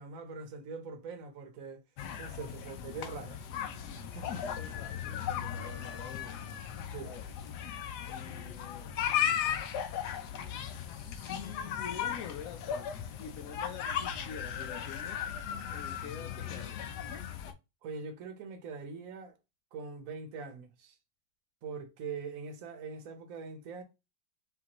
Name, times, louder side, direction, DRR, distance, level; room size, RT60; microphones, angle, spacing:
voice 1, 0.0-1.8 2.2-3.4 3.9-4.4 6.8-7.1 17.8-19.3 19.7-21.0 21.6-23.8, right 5 dB, 55° right, 1.1 m, -43 dB
sound 1, 2.0-17.5, left 9 dB, 70° left, 1.1 m, -37 dB
voice 2, 4.4-6.4 7.0-7.3 8.1-8.9 10.5-15.3 15.7-16.9, left 7 dB, 90° left, 0.7 m, -47 dB
5.7 x 2.6 x 2.9 m
omnidirectional pair, 2.0 m